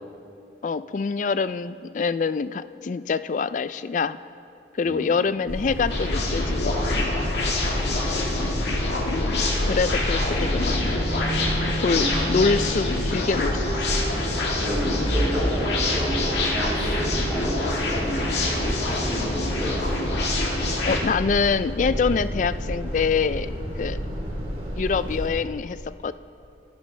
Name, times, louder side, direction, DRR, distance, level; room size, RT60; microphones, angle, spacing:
voice 1, 0.6-4.2 4.7-7.1 9.1-11.0 11.8-13.9 20.8-24.0 24.8-26.1, left 5 dB, 45° left, 15 dB, 0.3 m, -25 dB
voice 2, 4.8-5.3 7.7-8.5 11.9-12.1 14.6-20.0, equal, 10° right, -7 dB, 2.1 m, -32 dB
sound 1, 5.5-25.3, equal, 35° right, 2.8 m, -29 dB
sound 2, 5.9-21.0, left 2 dB, 75° left, 1.8 m, -26 dB
24.5 x 11.5 x 3.3 m, 2.6 s
head